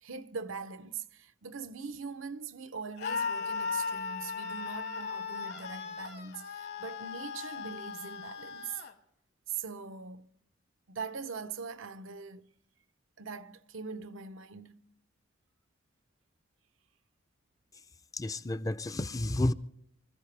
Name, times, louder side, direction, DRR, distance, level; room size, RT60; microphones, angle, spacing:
voice 1, 0.0-8.8 9.5-10.3 10.9-12.5 13.2-14.8, right 5 dB, 85° right, 0.8 m, -42 dB
Screaming, 3.0-8.9, left 5 dB, 55° left, 1.4 m, -37 dB
voice 2, 18.1-19.5, left 1 dB, 20° left, 0.5 m, -31 dB
25.0 x 15.0 x 3.3 m
head